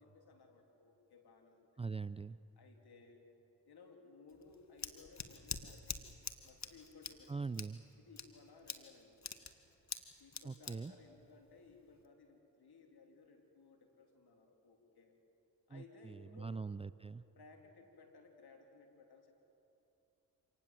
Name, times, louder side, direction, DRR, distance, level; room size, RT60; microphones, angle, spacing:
voice 1, 0.0-1.7 2.6-3.3 3.7-6.0 6.4-7.5 8.0-9.2 10.2-15.2 15.7-16.6 17.3-19.3, left 4 dB, 65° left, 3 dB, 3.4 m, -60 dB
voice 2, 1.8-2.4 7.3-7.8 10.4-10.9 15.7-17.2, right 4 dB, 15° right, 16 dB, 0.4 m, -42 dB
Scissors, 4.3-12.1, left 5 dB, 40° left, 1.8 m, -47 dB
26.5 x 19.0 x 7.6 m, 3.0 s
supercardioid pair, 45°, 41 cm